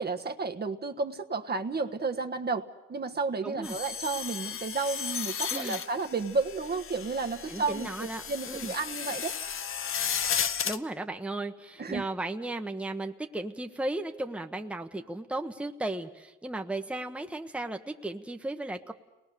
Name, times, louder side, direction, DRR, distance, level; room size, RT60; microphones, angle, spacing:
voice 1, 0.0-2.6 2.9-9.3 11.8-12.1, right 4 dB, 35° right, 5 dB, 1.3 m, -32 dB
voice 2, 3.4-3.8 5.5-5.8 7.5-8.7 10.6-18.9, right 2 dB, 5° right, 4 dB, 1.2 m, -35 dB
sound 1, 3.6-10.8, left 7 dB, 45° left, 0.9 m, -34 dB
29.5 x 20.0 x 6.9 m, 1.1 s
cardioid pair, 90°, 30 cm